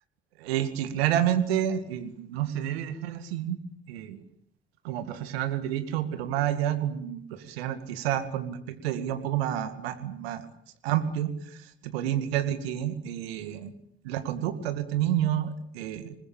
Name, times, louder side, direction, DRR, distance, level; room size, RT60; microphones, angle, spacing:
voice 1, 0.4-3.6 3.9-4.2 4.8-10.4 10.8-13.7 14.0-16.2, right 11 dB, 85° right, 9 dB, 2.2 m, -29 dB
27.5 x 21.0 x 9.0 m, 0.69 s
hypercardioid pair, 50°, 30 cm